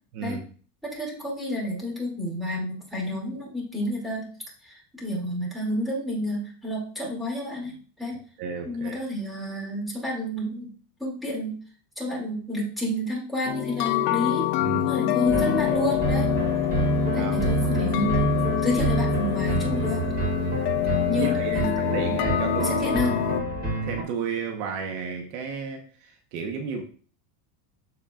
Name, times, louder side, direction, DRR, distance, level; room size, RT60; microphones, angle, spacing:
voice 1, 0.8-4.3 4.6-8.2 8.6-10.7 11.0-11.5 12.0-14.5 14.9-16.3 17.1-18.3 18.6-20.0 21.1-21.7 22.6-23.2, left 1 dB, ahead, -4 dB, 2.7 m, -30 dB
voice 2, 8.4-9.0 14.6-15.0 17.1-17.4 20.9-23.1 23.8-26.8, right 5 dB, 60° right, 3 dB, 1.3 m, -33 dB
sound 1, 13.5-23.4, left 14 dB, 65° left, 0.7 m, -26 dB
sound 2, 15.2-24.0, right 2 dB, 20° right, 3.1 m, -27 dB
13.0 x 4.3 x 2.5 m, 0.43 s
supercardioid pair, 145°, 50 cm